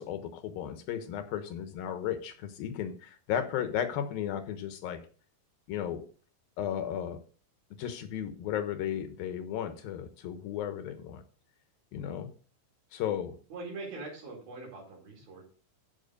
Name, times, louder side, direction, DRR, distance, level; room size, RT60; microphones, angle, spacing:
voice 1, 0.0-5.0 5.7-6.0 6.6-7.2 7.8-11.2 11.9-12.3 12.9-13.4, left 9 dB, 85° left, 9 dB, 3.0 m, -34 dB
voice 2, 13.5-15.4, right 3 dB, 90° right, -2 dB, 6.3 m, -42 dB
14.5 x 6.0 x 4.0 m, 0.38 s
omnidirectional pair, 4.1 m